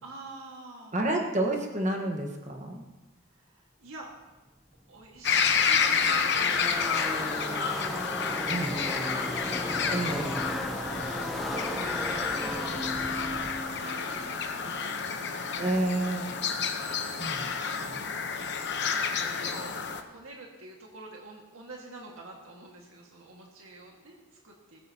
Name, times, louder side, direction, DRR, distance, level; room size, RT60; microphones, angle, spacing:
voice 1, 0.0-1.0 3.3-4.1 4.9-9.5 10.8-13.5 13.8-15.4 17.1-17.9 18.2-18.5 18.9-19.8 20.1-24.8, right 2 dB, 80° right, -1 dB, 1.8 m, -47 dB
voice 2, 0.9-2.8 8.5-8.7 9.9-10.3 15.5-16.4 17.2-18.1, right 1 dB, 35° right, 2 dB, 1.3 m, -30 dB
Car passing by / Race car auto racing, 4.8-4.9 5.0-15.6, equal, ahead, 0.7 m, -37 dB
sound 1, 5.2-20.0, left 6 dB, 50° left, 0.9 m, -30 dB
17.5 x 15.5 x 2.9 m, 1.1 s
head